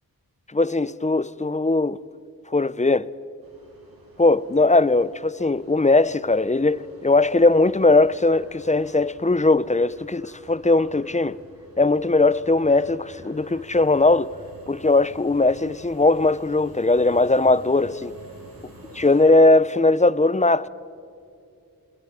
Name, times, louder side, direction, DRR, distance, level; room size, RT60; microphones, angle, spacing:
voice 1, 0.5-2.0 2.5-3.1 4.2-11.4 11.8-14.3 14.7-18.1 18.9-20.7, left 2 dB, 20° left, 0.6 m, -19 dB
sound 1, 3.4-19.2, right 1 dB, 65° right, 6.6 m, -48 dB
29.5 x 28.0 x 4.9 m
wide cardioid pair, 80°, 38 cm